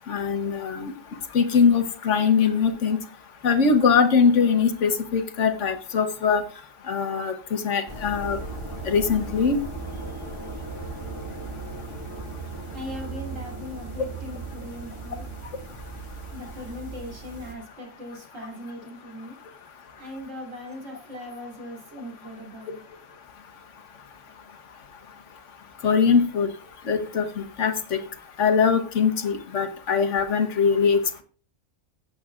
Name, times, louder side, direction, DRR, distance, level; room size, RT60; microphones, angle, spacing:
voice 1, 0.1-0.9 1.3-3.0 3.4-6.4 6.9-8.4 8.9-9.6 25.8-26.5 26.9-28.0 28.4-31.2, left 6 dB, 70° left, 7 dB, 1.3 m, -22 dB
sound 1, 7.9-17.6, right 3 dB, 25° right, 1.7 m, -37 dB
voice 2, 12.7-15.3 16.3-19.4 20.0-22.8, left 1 dB, 80° right, -1 dB, 3.5 m, -39 dB
15.0 x 7.8 x 2.4 m, 0.39 s
omnidirectional pair, 1.3 m